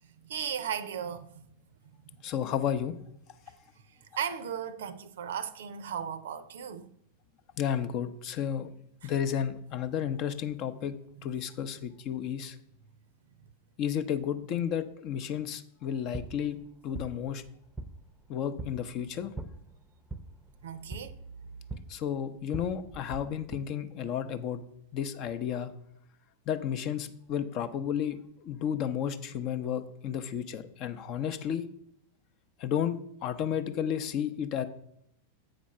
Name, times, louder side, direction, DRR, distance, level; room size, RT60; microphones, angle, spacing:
voice 1, 0.0-1.5 2.0-2.1 3.9-6.9 9.0-9.1 11.2-11.3 20.6-21.2, right 8 dB, 60° right, 0.6 m, -37 dB
voice 2, 2.2-3.0 7.6-8.7 9.0-12.6 13.8-17.5 18.3-19.3 21.9-24.6 24.9-25.7 26.5-31.7 32.6-34.6, left 9 dB, 40° left, 0.6 m, -32 dB
sound 1, 15.8-23.6, right 2 dB, 5° right, 0.7 m, -44 dB
7.8 x 5.1 x 5.6 m
figure-of-eight pair, 90°, 0 cm